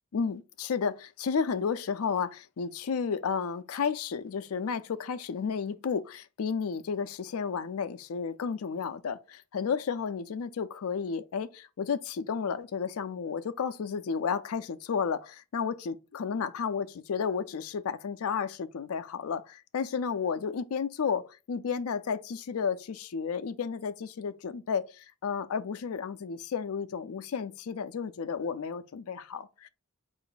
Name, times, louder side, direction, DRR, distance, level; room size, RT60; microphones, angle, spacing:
voice 1, 0.1-29.7, left 6 dB, 85° left, 0.4 m, -32 dB
4.5 x 2.5 x 3.9 m
head